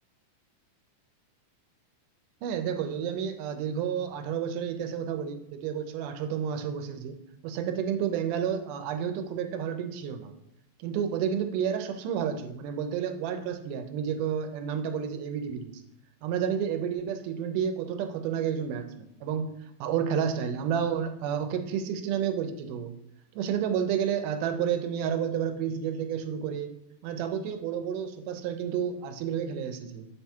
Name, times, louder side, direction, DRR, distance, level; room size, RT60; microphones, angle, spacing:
voice 1, 2.4-7.2 7.4-10.3 10.8-15.7 16.2-19.5 19.8-22.9 23.4-26.7 27.0-30.1, right 8 dB, 85° right, 8 dB, 2.2 m, -30 dB
7.1 x 3.4 x 4.3 m, 0.81 s
omnidirectional pair, 3.7 m